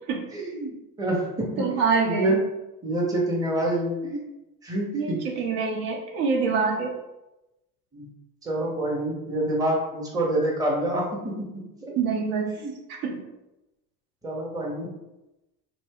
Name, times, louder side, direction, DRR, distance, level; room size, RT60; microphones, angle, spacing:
voice 1, 0.3-1.5 2.0-2.4 2.8-4.2 4.6-5.2 7.9-8.1 8.4-11.5 11.8-11.9 12.6-12.7 14.2-14.9, right 1 dB, 10° right, -3 dB, 0.6 m, -27 dB
voice 2, 1.6-2.4 4.9-6.9 12.0-12.6 12.9-13.2, right 5 dB, 65° right, 1 dB, 0.8 m, -25 dB
2.6 x 2.0 x 3.4 m, 0.97 s
hypercardioid pair, 80°, 49 cm